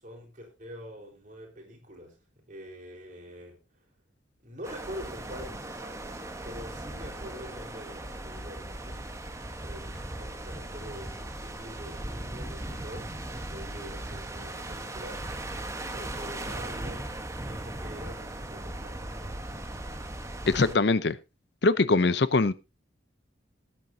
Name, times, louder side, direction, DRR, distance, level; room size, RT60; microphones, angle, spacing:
voice 1, 0.0-2.2 2.5-3.6 4.4-6.1 6.4-9.3 9.6-15.2 15.9-19.4, equal, 40° right, 1 dB, 4.1 m, -45 dB
sound 1, 4.6-20.7, right 1 dB, 15° right, 1.1 m, -38 dB
voice 2, 20.5-21.2 21.6-22.5, left 3 dB, 55° left, 16 dB, 0.6 m, -22 dB
19.5 x 9.0 x 2.7 m, 0.26 s
head